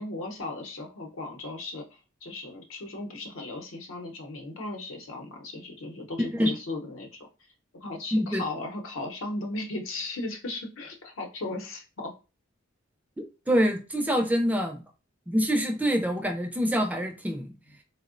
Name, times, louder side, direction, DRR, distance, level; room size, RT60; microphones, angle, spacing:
voice 1, 0.0-7.3 7.8-12.1, left 2 dB, 80° left, 0.7 m, -36 dB
voice 2, 8.1-8.4 13.5-14.8 15.3-17.5, equal, 10° right, 0.3 m, -25 dB
3.4 x 2.0 x 2.4 m
head